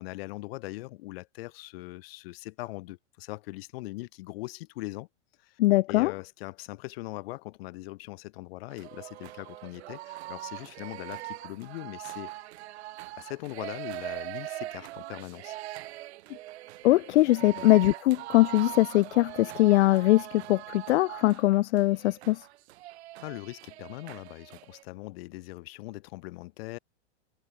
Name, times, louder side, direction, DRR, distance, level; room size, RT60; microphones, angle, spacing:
voice 1, 0.0-5.1 5.4-5.6 5.9-12.3 13.2-15.6 17.5-17.7 23.2-26.8, left 20 dB, 55° left, 5.3 m, -41 dB
voice 2, 5.6-6.1 16.8-22.4, left 17 dB, 70° left, 0.6 m, -22 dB
sound 1, 8.7-24.8, right 16 dB, 65° right, 3.9 m, -41 dB
supercardioid pair, 155°, 36 cm